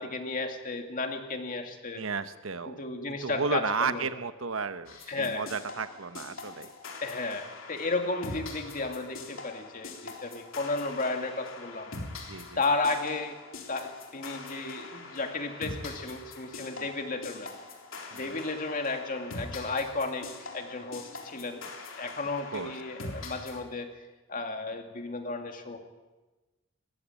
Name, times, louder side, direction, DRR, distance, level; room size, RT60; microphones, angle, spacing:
voice 1, 0.0-2.0 2.6-4.0 5.1-5.4 7.0-11.9 12.6-13.4 13.7-17.5 18.1-20.3 20.5-21.6 22.0-23.9 24.3-25.8, left 3 dB, 45° left, 4 dB, 2.3 m, -33 dB
voice 2, 1.9-2.8 3.1-6.7 12.3-12.6 16.8-16.9 18.1-18.4 22.5-22.7, right 4 dB, 85° right, 11 dB, 1.1 m, -33 dB
sound 1, 4.9-23.6, left 3 dB, 75° left, 3.6 m, -43 dB
20.5 x 15.5 x 9.0 m, 1.2 s
head